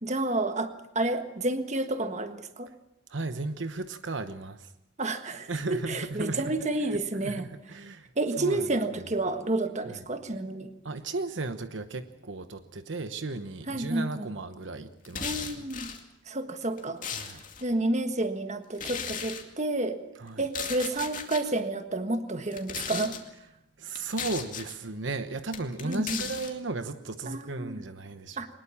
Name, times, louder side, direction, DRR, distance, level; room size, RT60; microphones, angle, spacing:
voice 1, 0.0-2.7 5.0-7.5 8.2-10.7 13.7-14.3 15.2-15.9 16.3-17.0 17.6-20.0 20.4-23.2 25.8-26.2 27.3-27.8 28.4-28.5, right 2 dB, 40° right, 8 dB, 1.5 m, -30 dB
voice 2, 3.1-4.7 5.5-6.6 6.9-8.1 8.4-8.7 9.9-10.0 10.8-15.6 17.1-17.4 20.2-20.4 23.8-28.4, right 3 dB, 70° right, 9 dB, 1.1 m, -35 dB
sound 1, 15.0-16.0 16.6-17.6 18.7-19.4 20.4-21.4 22.5-23.2 23.9-24.7 25.5-26.5, left 7 dB, 45° left, 2.3 m, -36 dB
22.5 x 20.5 x 7.1 m, 0.84 s
head